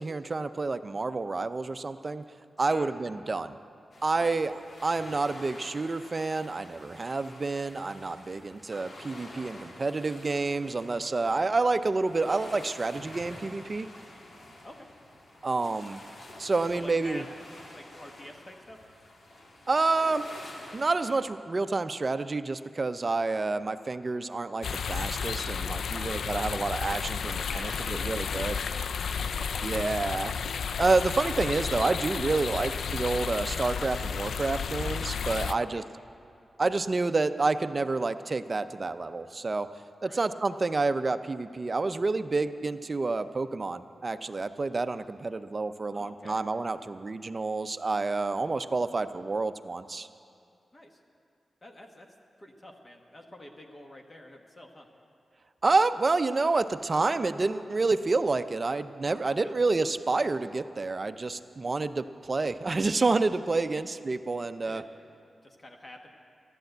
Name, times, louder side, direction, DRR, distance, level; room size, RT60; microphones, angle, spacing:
voice 1, 0.0-2.2 2.6-3.6 4.0-4.5 4.8-13.9 15.4-16.0 16.4-17.2 19.7-20.3 20.7-28.6 29.6-30.3 30.8-35.8 36.6-39.7 40.0-50.1 55.6-64.8, right 3 dB, 35° right, 11 dB, 0.5 m, -29 dB
sound 1, 3.9-21.2, left 1 dB, 55° left, 2.4 m, -48 dB
voice 2, 16.7-17.3 17.7-18.8 25.9-26.3 27.5-28.9 29.2-29.5 35.6-35.9 40.0-40.3 45.9-46.4 50.7-51.0 51.6-52.1 52.4-54.9 59.3-59.5 63.7-63.8 64.6-64.8 65.4-66.1, left 1 dB, 25° left, 2 dB, 1.2 m, -47 dB
sound 2, 24.6-35.5, left 6 dB, 85° left, 0.3 m, -32 dB
14.5 x 11.5 x 7.9 m, 2.5 s
wide cardioid pair, 130°, 0 cm